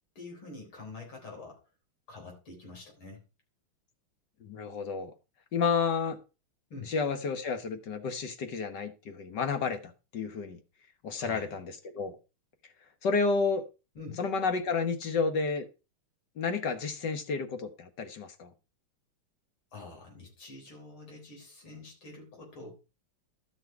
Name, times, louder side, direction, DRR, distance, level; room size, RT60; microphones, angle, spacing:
voice 1, 0.2-1.6 2.1-3.2 6.7-6.9 11.2-11.6 13.9-14.2 19.7-22.7, left 3 dB, 85° left, 5.0 m, -46 dB
voice 2, 4.4-5.1 5.5-6.2 6.9-10.6 11.0-12.2 13.0-13.6 14.2-15.6 16.4-18.5, left 4 dB, 60° left, 1.8 m, -31 dB
12.5 x 6.1 x 4.5 m
omnidirectional pair, 2.3 m